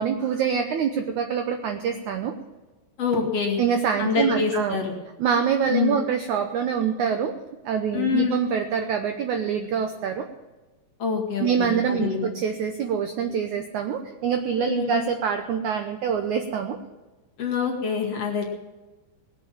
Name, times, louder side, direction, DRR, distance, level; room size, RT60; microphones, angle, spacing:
voice 1, 0.0-2.3 3.6-4.8 5.2-7.3 7.6-10.3 11.4-16.8, right 7 dB, 75° right, 6 dB, 1.8 m, -25 dB
voice 2, 3.0-3.6 4.0-4.9 5.7-6.0 7.9-8.4 11.0-12.3 14.7-15.0 17.4-18.4, left 5 dB, 45° left, -1 dB, 2.7 m, -25 dB
19.5 x 7.7 x 7.5 m, 1.2 s
omnidirectional pair, 4.6 m